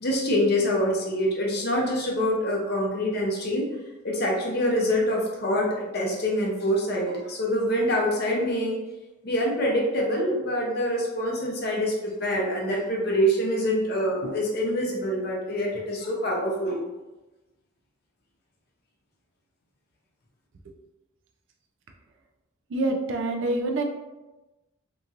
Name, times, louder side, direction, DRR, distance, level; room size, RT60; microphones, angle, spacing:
voice 1, 0.0-3.7 4.0-8.7 9.2-16.8, equal, 50° left, -2 dB, 0.7 m, -25 dB
voice 2, 22.7-23.8, right 2 dB, 65° right, 3 dB, 0.4 m, -26 dB
2.9 x 2.6 x 2.5 m, 1.1 s
head